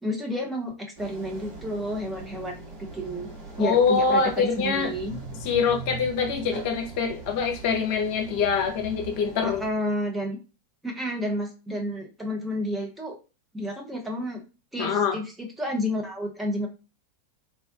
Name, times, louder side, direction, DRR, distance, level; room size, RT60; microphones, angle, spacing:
voice 1, 0.0-2.6 2.9-3.3 3.6-5.2 9.4-10.4 10.8-13.2 13.5-14.4 14.7-16.7, equal, 5° right, 0 dB, 0.6 m, -30 dB
sound 1, 1.0-9.7, right 3 dB, 45° right, 0.9 m, -41 dB
voice 2, 3.6-4.9 5.4-9.6 14.8-15.2, left 5 dB, 45° left, 3 dB, 0.7 m, -24 dB
3.6 x 2.2 x 2.4 m, 0.31 s
figure-of-eight pair, 90°, 0 cm